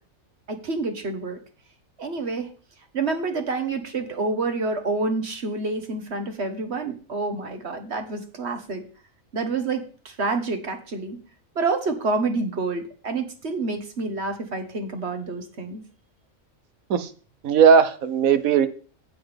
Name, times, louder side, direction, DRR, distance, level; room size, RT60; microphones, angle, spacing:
voice 1, 0.5-1.4 2.0-2.5 2.9-8.8 9.3-11.2 11.5-15.8, right 3 dB, 55° right, 1.5 m, -28 dB
voice 2, 17.4-18.7, right 7 dB, 85° right, 1.3 m, -17 dB
16.5 x 5.7 x 3.4 m
omnidirectional pair, 1.4 m